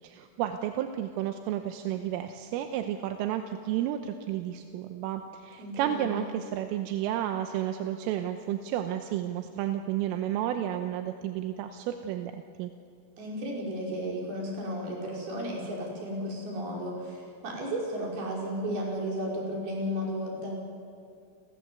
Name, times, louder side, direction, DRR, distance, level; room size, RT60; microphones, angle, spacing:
voice 1, 0.0-12.7, right 11 dB, 85° right, 6 dB, 3.5 m, -32 dB
voice 2, 5.6-6.3 13.2-20.6, equal, 50° right, -2 dB, 7.0 m, -34 dB
30.0 x 22.5 x 7.9 m, 2.3 s
omnidirectional pair, 5.8 m